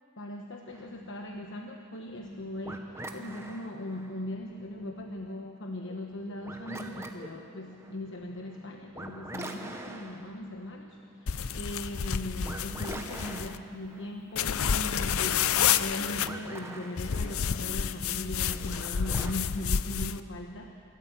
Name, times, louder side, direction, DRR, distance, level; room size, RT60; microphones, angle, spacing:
voice 1, 0.2-15.5 15.8-20.8, left 1 dB, 55° left, 2 dB, 1.2 m, -39 dB
sound 1, 0.7-19.3, right 1 dB, 10° right, 1.1 m, -45 dB
sound 2, 11.3-13.6 14.3-16.3 17.0-20.2, left 8 dB, 75° left, 0.6 m, -29 dB
25.5 x 13.5 x 7.5 m, 2.8 s
head